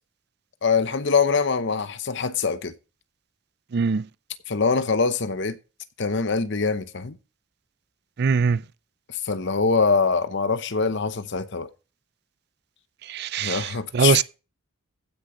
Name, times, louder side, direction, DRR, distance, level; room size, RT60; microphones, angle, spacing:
voice 1, 0.6-2.7 4.5-5.5 6.0-7.1 9.2-11.7 13.4-14.2, left 4 dB, 55° left, 0.8 m, -23 dB
voice 2, 3.7-4.0 8.2-8.6 13.1-14.2, right 5 dB, 50° right, 0.4 m, -22 dB
15.5 x 6.5 x 3.9 m
head